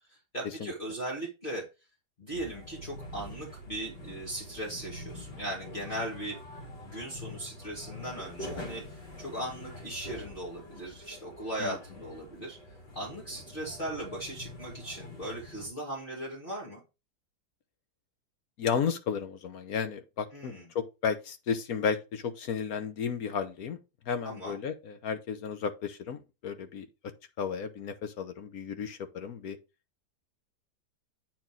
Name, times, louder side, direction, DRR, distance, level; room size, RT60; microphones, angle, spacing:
voice 1, 0.1-1.7 2.2-6.4 6.8-8.8 9.2-12.6 12.9-16.8 20.3-20.6 24.2-24.6, right 1 dB, 30° left, 2.3 m, -38 dB
sound 1, 2.3-15.7, left 1 dB, 85° left, 3.0 m, -45 dB
voice 2, 18.6-23.8 24.0-26.9 27.4-29.6, left 6 dB, 65° left, 1.3 m, -33 dB
8.4 x 4.4 x 3.8 m
omnidirectional pair, 1.8 m